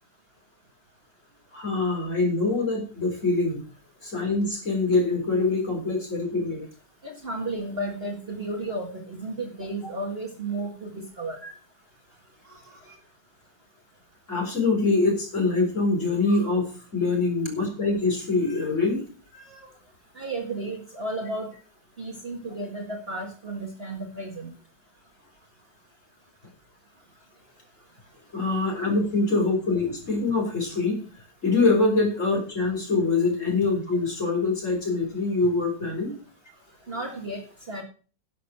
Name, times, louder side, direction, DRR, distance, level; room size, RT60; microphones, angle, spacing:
voice 1, 1.5-3.6 4.0-6.6 11.4-11.5 12.5-12.6 12.9-13.0 14.3-19.0 19.3-19.7 28.3-31.0 31.4-36.1, left 3 dB, 40° left, 1 dB, 4.4 m, -24 dB
voice 2, 7.0-11.4 20.2-21.5 22.0-24.5 36.9-37.4 37.7-37.8, right 2 dB, 35° right, 1 dB, 2.0 m, -33 dB
11.0 x 6.7 x 6.3 m, 0.37 s
omnidirectional pair, 2.0 m